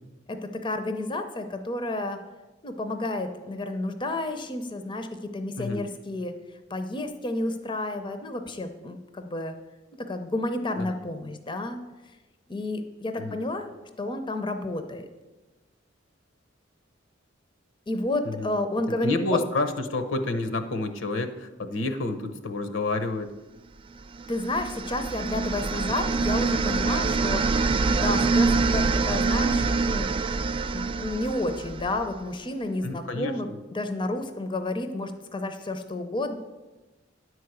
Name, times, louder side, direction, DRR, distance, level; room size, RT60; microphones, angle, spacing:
voice 1, 0.3-2.2 2.6-6.3 6.7-9.5 10.0-11.8 12.5-13.7 14.0-15.1 17.9-19.1 24.3-27.4 27.9-30.1 30.7-36.3, left 2 dB, 25° left, 7 dB, 0.6 m, -31 dB
voice 2, 19.0-23.3 32.8-33.6, left 2 dB, 75° left, 8 dB, 0.9 m, -29 dB
sound 1, 24.2-32.2, right 4 dB, 25° right, 0.3 m, -25 dB
10.0 x 4.7 x 7.8 m, 1.1 s
head